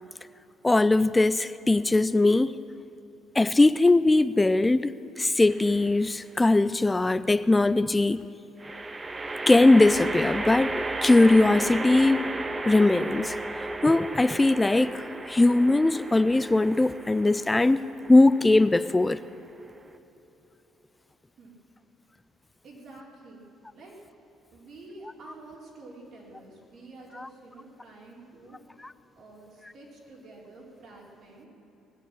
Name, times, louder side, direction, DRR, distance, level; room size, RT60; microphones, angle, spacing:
voice 1, 0.6-2.6 3.4-8.2 9.5-13.3 13.8-19.2 27.2-27.3 28.8-28.9, left 2 dB, 15° left, 15 dB, 0.4 m, -21 dB
sound 1, 5.5-6.1 8.6-20.0, right 2 dB, 20° right, 0.8 m, -34 dB
voice 2, 22.6-23.5 23.7-24.0 24.5-28.9 29.1-31.5, right 2 dB, 55° right, -3 dB, 4.1 m, -48 dB
20.0 x 6.8 x 9.9 m, 3.0 s
cardioid pair, 110°, 0 cm